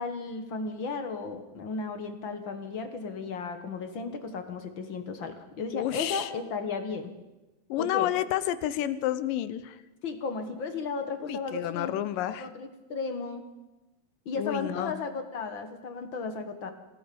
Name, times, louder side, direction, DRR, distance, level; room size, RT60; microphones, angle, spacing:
voice 1, 0.0-7.1 7.8-8.1 10.0-11.9 12.3-13.4 14.2-16.7, left 4 dB, 55° left, 7 dB, 1.3 m, -34 dB
voice 2, 5.7-6.3 7.7-9.8 11.2-12.5 14.4-14.9, left 13 dB, 80° left, 14 dB, 2.5 m, -30 dB
28.0 x 17.5 x 5.3 m, 1.0 s
omnidirectional pair, 4.0 m